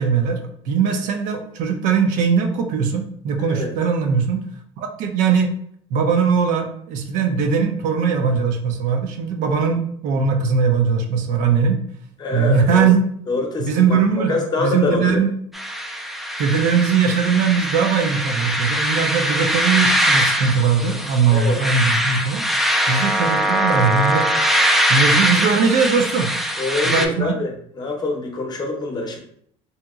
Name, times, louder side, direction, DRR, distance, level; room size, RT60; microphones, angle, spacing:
voice 1, 0.0-4.4 4.8-5.5 5.9-11.8 12.3-13.0 13.6-15.3 16.4-22.4 22.9-24.3 24.9-26.3 26.8-27.4, right 5 dB, 70° right, 4 dB, 0.5 m, -20 dB
voice 2, 3.4-3.7 12.2-12.9 13.3-15.2 21.3-21.6 26.6-27.5 27.7-29.2, left 3 dB, 30° left, 1 dB, 0.7 m, -25 dB
sound 1, 15.5-27.1, equal, ahead, 0.3 m, -21 dB
2.8 x 2.8 x 2.3 m, 0.65 s
supercardioid pair, 100°, 14 cm